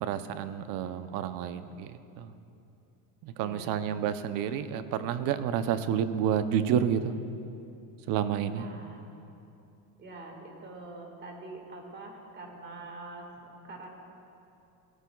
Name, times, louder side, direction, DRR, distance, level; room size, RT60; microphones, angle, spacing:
voice 1, 0.0-2.3 3.2-7.2 8.1-8.7, right 9 dB, 55° right, 11 dB, 0.7 m, -30 dB
voice 2, 3.4-3.8 8.5-9.0 10.0-14.0, right 2 dB, 25° right, 2 dB, 1.8 m, -45 dB
17.0 x 13.0 x 2.3 m, 2.8 s
supercardioid pair, 125°, 40 cm